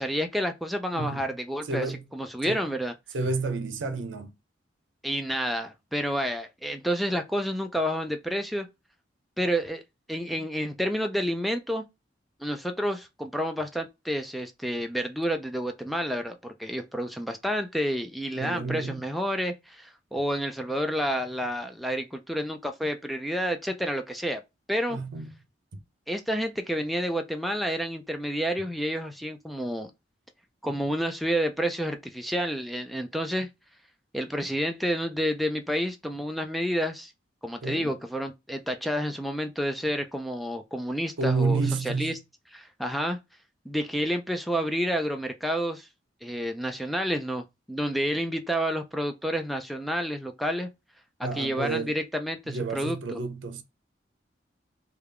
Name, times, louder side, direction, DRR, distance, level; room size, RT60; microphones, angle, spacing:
voice 1, 0.0-1.9 2.1-2.9 5.0-8.7 9.4-9.8 10.1-11.9 12.4-24.4 24.7-25.0 26.1-29.9 30.6-33.5 34.1-37.1 37.4-41.6 41.8-42.2 42.5-43.2 43.7-45.9 46.2-50.7 51.4-53.2, equal, ahead, 0.3 m, -29 dB
voice 2, 0.9-1.3 1.6-2.0 2.4-2.6 3.1-4.3 18.3-19.0 24.9-25.3 37.6-38.0 41.2-42.2 51.2-51.9 52.5-53.6, right 4 dB, 80° right, 0.6 m, -30 dB
3.3 x 2.4 x 3.3 m
head